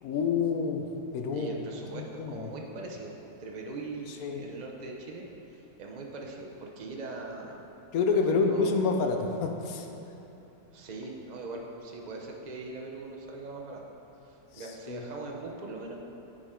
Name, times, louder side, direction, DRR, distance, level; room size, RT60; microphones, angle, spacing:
voice 1, 0.0-0.9 1.1-1.5 1.9-2.5 4.2-4.5 7.9-9.9 14.5-15.0, left 4 dB, 70° left, 4 dB, 1.0 m, -28 dB
voice 2, 1.3-5.2 5.5-7.6 8.1-8.7 10.7-13.8 14.2-16.0, right 3 dB, 50° right, 0 dB, 0.5 m, -41 dB
9.5 x 5.1 x 3.7 m, 3.0 s
omnidirectional pair, 1.7 m